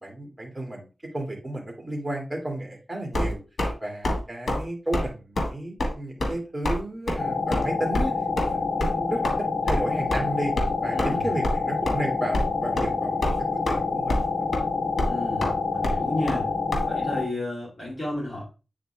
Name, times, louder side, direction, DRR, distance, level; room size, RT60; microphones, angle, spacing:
voice 1, 0.0-3.4 3.8-8.1 8.4-10.5 10.8-14.4, right 1 dB, 10° right, 0 dB, 2.1 m, -32 dB
sound 1, 3.1-3.7 4.0-4.2 4.5-4.6 4.9-5.1 5.4-5.5 5.8-5.9 6.2-6.3 6.6-6.8 7.1-7.2 7.5-7.6 7.9-8.0 8.4-8.5 8.8-8.9 9.2-9.4 9.7-9.8 10.1-10.2 10.6-10.7 11.0-11.1 11.4-11.6 11.8-11.9 12.3-12.5 12.8-12.9 13.2-13.8 14.1-14.3 14.5-14.6 15.0-15.1 15.4-15.5 15.8-16.0 16.3-16.4 16.7-16.8, left 1 dB, 70° left, 1.7 m, -26 dB
sound 2, 7.2-17.3, left 4 dB, 55° left, 1.0 m, -27 dB
voice 2, 10.9-11.3 15.1-16.5 16.8-18.4, left 1 dB, 30° left, -6 dB, 3.1 m, -32 dB
8.5 x 3.9 x 3.3 m, 0.31 s
wide cardioid pair, 65°, 0 cm